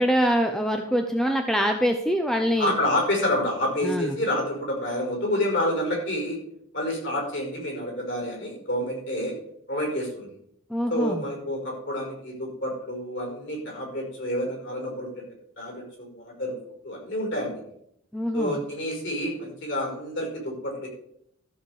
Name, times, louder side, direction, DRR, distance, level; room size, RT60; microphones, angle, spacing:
voice 1, 0.0-2.7 3.8-4.2 10.7-11.2 18.1-18.6, equal, ahead, 4 dB, 0.7 m, -24 dB
voice 2, 2.6-6.4 6.7-9.3 9.7-10.3 10.9-15.3 15.6-16.6 16.8-17.6 18.3-20.9, left 1 dB, 60° left, 0 dB, 5.2 m, -28 dB
13.5 x 7.2 x 4.8 m, 0.71 s
head